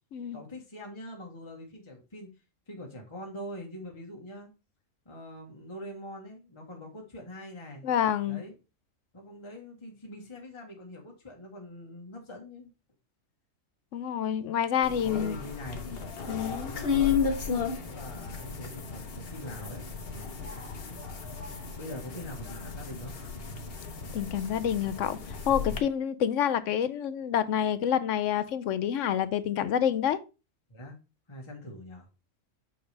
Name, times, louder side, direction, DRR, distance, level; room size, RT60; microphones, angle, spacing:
voice 1, 0.3-2.3 2.7-4.5 5.0-7.8 8.3-8.5 9.1-12.7 15.0-15.8 16.6-17.2 17.8-20.3 21.8-23.2 25.5-25.8 30.7-31.0 31.3-32.1, left 1 dB, 20° left, 1.4 m, -43 dB
voice 2, 7.8-8.4 13.9-15.4 16.3-16.7 24.1-25.2 25.5-30.2, left 9 dB, 70° left, 0.9 m, -28 dB
sound 1, 14.8-25.8, left 6 dB, 50° left, 1.2 m, -34 dB
8.0 x 5.2 x 3.3 m
omnidirectional pair, 1.4 m